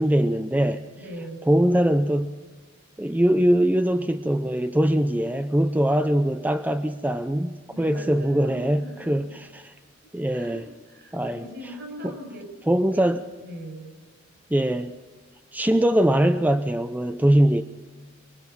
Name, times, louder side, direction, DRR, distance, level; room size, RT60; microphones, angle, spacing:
voice 1, 0.0-0.8 1.5-2.4 3.0-9.3 9.5-9.6 10.1-10.6 11.1-11.4 12.0-12.1 12.7-13.2 14.5-14.9 15.5-17.6, right 1 dB, 10° right, 9 dB, 0.6 m, -22 dB
voice 2, 0.9-1.5 7.7-9.4 10.0-12.5 12.9-13.0 13.4-14.0, equal, 60° right, 4 dB, 6.0 m, -41 dB
24.5 x 22.5 x 5.6 m, 1.3 s
head